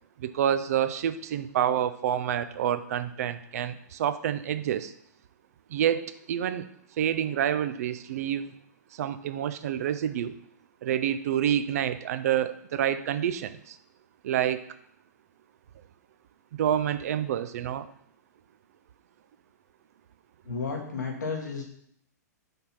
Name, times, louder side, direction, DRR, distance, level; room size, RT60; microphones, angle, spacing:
voice 1, 0.2-4.9 5.7-6.6 7.0-8.5 9.0-10.3 10.8-13.7 14.2-14.6 16.6-17.9, right 10 dB, 60° right, 12 dB, 0.5 m, -28 dB
voice 2, 20.5-21.6, left 4 dB, 80° left, 1 dB, 1.7 m, -32 dB
5.2 x 4.0 x 6.0 m, 0.69 s
hypercardioid pair, 115°, 9 cm